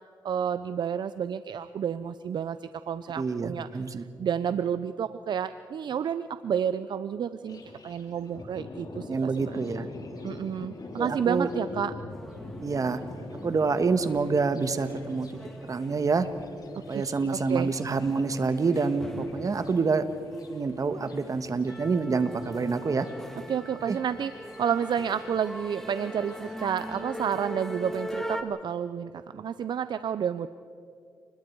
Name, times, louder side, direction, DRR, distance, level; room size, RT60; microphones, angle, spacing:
voice 1, 0.2-3.7 3.9-9.6 10.2-11.9 16.9-17.0 17.5-17.7 23.5-30.5, right 8 dB, 65° right, 13 dB, 0.6 m, -30 dB
voice 2, 3.2-4.0 9.1-9.9 11.0-11.5 12.6-13.0 13.4-15.3 15.7-16.3 16.7-20.1 20.5-23.1 23.9-24.0, right 4 dB, 45° right, 10 dB, 1.5 m, -27 dB
Thunder, 7.5-27.0, left 2 dB, 50° left, 3.3 m, -46 dB
sound 1, 12.1-28.4, equal, 5° left, 2.3 m, -42 dB
29.5 x 21.0 x 4.7 m, 2.7 s
cardioid pair, 75°, 8 cm